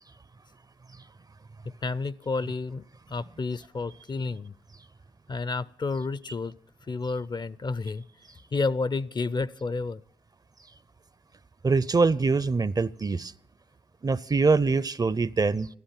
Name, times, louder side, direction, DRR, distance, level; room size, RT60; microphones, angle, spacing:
voice 1, 1.6-4.6 5.3-6.6 6.9-8.0 8.5-10.0, left 3 dB, 35° left, 0.5 m, -30 dB
voice 2, 11.6-13.3 14.0-15.7, right 4 dB, 30° right, 0.5 m, -24 dB
15.5 x 13.0 x 5.9 m
supercardioid pair, 50°, 13 cm